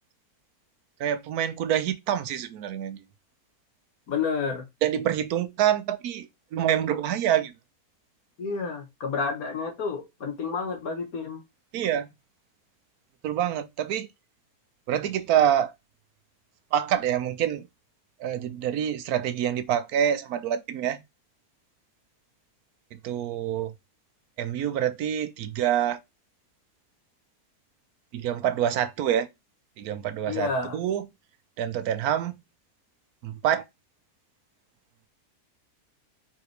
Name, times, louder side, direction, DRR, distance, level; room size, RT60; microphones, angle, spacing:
voice 1, 1.0-3.0 4.8-7.5 11.7-12.1 13.2-14.1 14.9-15.7 16.7-17.7 18.2-21.0 22.9-23.7 24.4-26.0 28.1-29.3 29.8-31.1 31.6-32.4 33.2-33.6, right 10 dB, 75° right, 1.1 m, -26 dB
voice 2, 4.1-4.6 8.4-11.4 28.4-28.5 30.3-30.8, left 5 dB, 65° left, 1.5 m, -30 dB
4.7 x 3.5 x 3.2 m
omnidirectional pair, 1.7 m